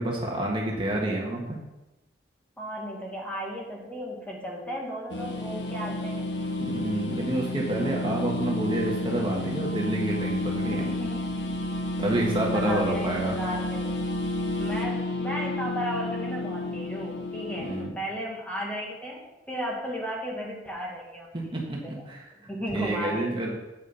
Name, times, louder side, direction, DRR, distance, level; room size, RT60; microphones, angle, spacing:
voice 1, 0.0-1.4 6.6-10.8 12.0-13.4 17.6-17.9 21.3-22.2 22.7-23.5, right 1 dB, 30° right, -1 dB, 1.6 m, -28 dB
voice 2, 2.6-6.3 7.1-7.2 10.7-11.5 12.5-14.0 14.6-21.3 21.8-22.0 22.3-23.5, equal, 10° left, -2 dB, 1.9 m, -35 dB
sound 1, 5.1-17.9, left 1 dB, 75° left, 1.3 m, -31 dB
8.5 x 6.3 x 5.5 m, 1.0 s
head